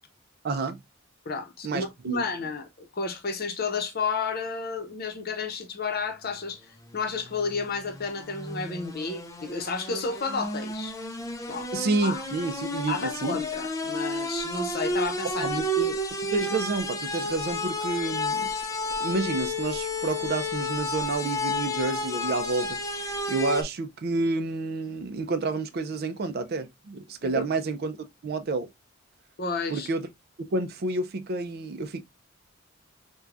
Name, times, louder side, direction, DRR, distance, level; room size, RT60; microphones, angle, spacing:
voice 1, 0.4-0.8 1.6-2.2 11.7-13.4 15.4-18.5 19.0-28.0 28.2-28.7 29.7-30.1 30.4-32.0, right 3 dB, 50° right, 0.4 m, -29 dB
voice 2, 1.3-6.6 6.9-10.9 11.5-11.7 12.0-12.2 12.9-15.6 27.2-27.4 29.4-29.9, left 4 dB, 50° left, 0.7 m, -31 dB
sound 1, 6.9-23.6, left 1 dB, 15° left, 0.4 m, -32 dB
4.5 x 2.2 x 2.4 m
head